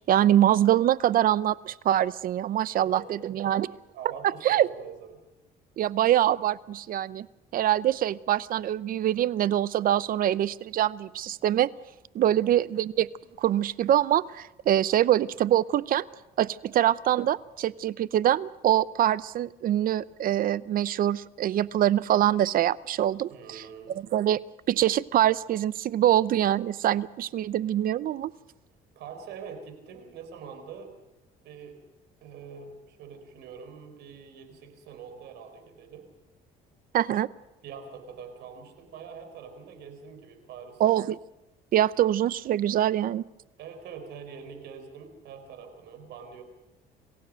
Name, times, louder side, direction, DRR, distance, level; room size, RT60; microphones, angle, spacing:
voice 1, 0.0-3.7 4.2-4.7 5.8-7.3 7.5-11.7 12.1-13.1 13.4-16.0 16.4-23.6 23.9-24.4 24.7-28.3 36.9-37.3 40.8-41.2 41.7-43.3, right 12 dB, 55° right, 19 dB, 0.7 m, -24 dB
voice 2, 2.8-3.5 3.9-5.1 12.3-12.6 23.3-24.0 29.0-30.9 31.4-31.8 32.2-36.1 37.6-40.8 43.6-46.4, right 6 dB, 80° right, 7 dB, 4.5 m, -44 dB
27.5 x 16.0 x 6.4 m, 0.95 s
cardioid pair, 110°, 17 cm